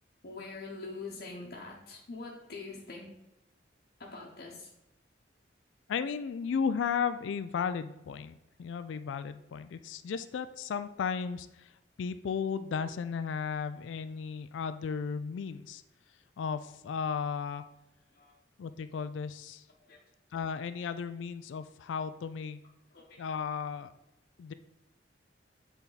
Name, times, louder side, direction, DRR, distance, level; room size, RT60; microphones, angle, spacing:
voice 1, 0.2-3.1 4.0-4.7 18.1-18.3 19.8-20.0 22.9-23.2, left 3 dB, 60° left, -4 dB, 0.9 m, -44 dB
voice 2, 5.9-15.8 16.4-17.6 18.6-19.7 20.3-22.6 23.2-23.9 24.4-24.5, left 6 dB, 85° left, 11 dB, 0.3 m, -35 dB
8.2 x 3.5 x 3.9 m, 0.91 s
head